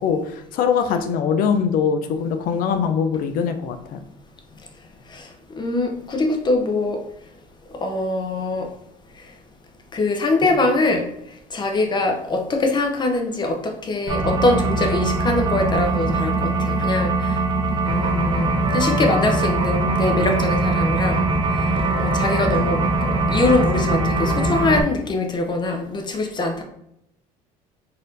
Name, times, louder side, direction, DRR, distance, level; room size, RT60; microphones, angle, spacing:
voice 1, 0.0-4.0, left 6 dB, 70° left, 8 dB, 0.6 m, -22 dB
voice 2, 5.6-7.0 7.8-8.7 9.9-11.0 11.5-17.4 17.9-21.3 21.9-26.6, left 2 dB, 30° left, 4 dB, 0.7 m, -23 dB
sound 1, 14.1-24.8, right 2 dB, 35° right, 0.6 m, -21 dB
4.2 x 2.6 x 3.8 m, 0.77 s
cardioid pair, 110°, 15 cm